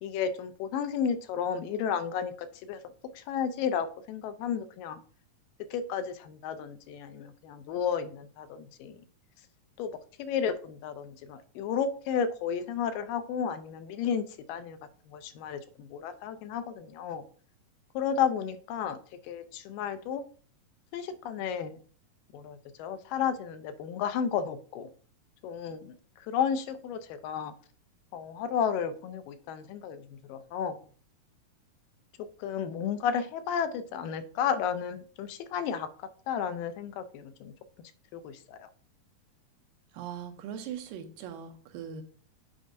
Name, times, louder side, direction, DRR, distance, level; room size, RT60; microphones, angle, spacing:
voice 1, 0.0-2.8 3.2-5.0 5.7-9.0 9.8-14.8 15.1-17.3 18.0-19.0 19.2-20.2 20.9-21.8 22.3-24.9 25.4-25.9 26.3-27.5 28.1-30.0 30.3-30.8 32.4-35.9 36.3-37.5 38.1-38.7, left 7 dB, 85° left, 10 dB, 2.3 m, -32 dB
voice 2, 39.9-42.0, right 8 dB, 85° right, 5 dB, 2.5 m, -40 dB
8.9 x 5.1 x 2.6 m, 0.44 s
omnidirectional pair, 3.9 m